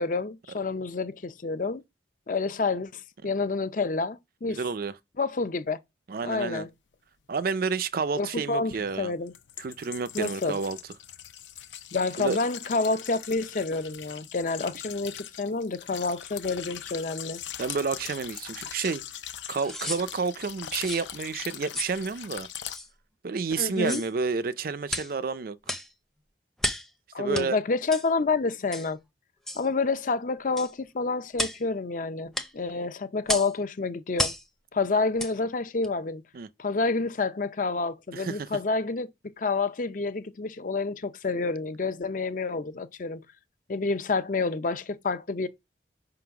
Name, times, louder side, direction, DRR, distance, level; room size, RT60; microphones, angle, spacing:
voice 1, 0.0-1.8 2.3-4.6 5.2-5.8 6.2-6.7 8.2-9.3 10.1-10.6 11.9-17.4 23.6-24.0 27.1-29.0 29.5-34.3 34.7-36.2 36.6-39.1 39.4-43.2 43.7-45.5, left 3 dB, 45° left, 0.5 m, -28 dB
voice 2, 4.5-4.9 6.1-6.7 7.3-9.1 9.6-10.8 12.2-12.4 17.6-19.0 19.5-22.5 23.2-25.6 27.2-27.6 36.3-36.5 38.1-38.5, right 4 dB, 50° right, 0.4 m, -30 dB
sound 1, 7.3-7.4 8.7-22.8, left 10 dB, 85° left, 0.7 m, -41 dB
sound 2, 18.8-18.9 19.6-20.0 20.8-21.1 21.7-22.0 22.7-22.9 23.7-24.1 24.9-25.1 25.6-25.9 26.6-26.9 27.3-27.5 27.9-28.1 28.7-28.9 29.5-29.6 30.6-30.7 31.3-31.6 32.3-32.5 33.3-33.5 34.2-34.4 35.2-35.3 35.8-35.9, left 1 dB, ahead, 0.6 m, -32 dB
5.4 x 3.9 x 5.8 m
head